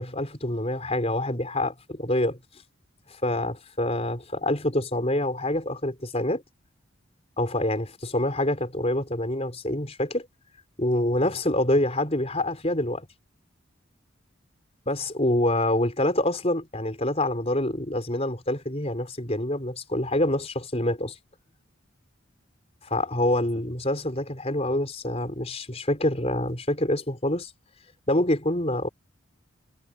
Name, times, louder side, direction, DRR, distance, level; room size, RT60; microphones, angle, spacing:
voice 1, 0.0-2.4 3.2-6.4 7.4-10.3 10.8-13.1 14.9-21.2 22.8-27.5 28.1-28.9, left 1 dB, 30° left, 5.1 m, -26 dB
head